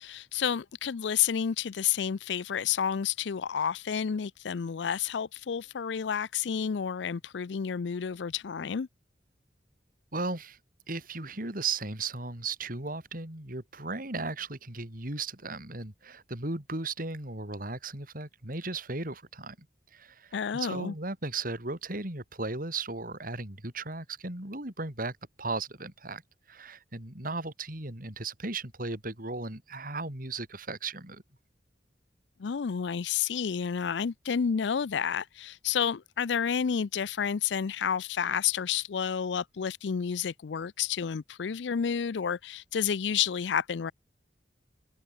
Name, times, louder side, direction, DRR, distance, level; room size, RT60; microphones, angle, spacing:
voice 1, 0.0-8.9 20.3-20.9 32.4-43.9, left 7 dB, 80° left, 0.5 m, -30 dB
voice 2, 10.1-10.6 10.9-19.6 19.9-26.2 26.5-31.2, right 3 dB, 50° right, 4.3 m, -36 dB
head